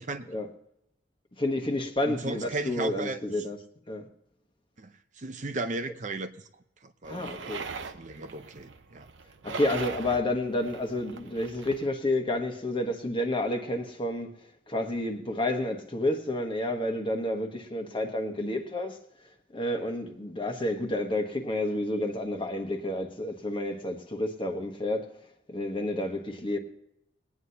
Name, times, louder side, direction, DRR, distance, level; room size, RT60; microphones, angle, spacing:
voice 1, 1.4-3.6 3.9-4.1 7.1-7.7 9.4-14.3 14.7-19.0 19.5-25.1 25.5-26.6, left 1 dB, 25° left, 1.2 m, -30 dB
voice 2, 2.1-3.2 4.8-6.3 6.8-9.1, right 2 dB, 40° right, 0.7 m, -36 dB
sound 1, 7.0-11.9, right 4 dB, 80° right, 0.8 m, -41 dB
21.5 x 9.5 x 2.8 m
head